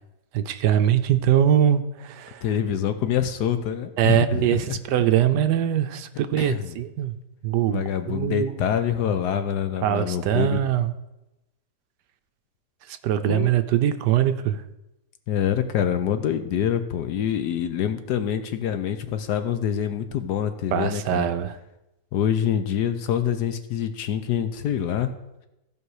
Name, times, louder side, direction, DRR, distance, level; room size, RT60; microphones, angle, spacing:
voice 1, 0.3-2.4 4.0-7.1 7.4-8.6 9.8-10.9 12.9-14.6 20.7-21.6, right 10 dB, 75° right, 10 dB, 1.2 m, -22 dB
voice 2, 2.4-4.8 6.4-6.7 7.7-10.6 13.3-13.5 15.3-21.3 22.1-25.1, left 9 dB, 70° left, 9 dB, 1.2 m, -26 dB
15.5 x 5.3 x 4.8 m, 0.94 s
omnidirectional pair, 2.0 m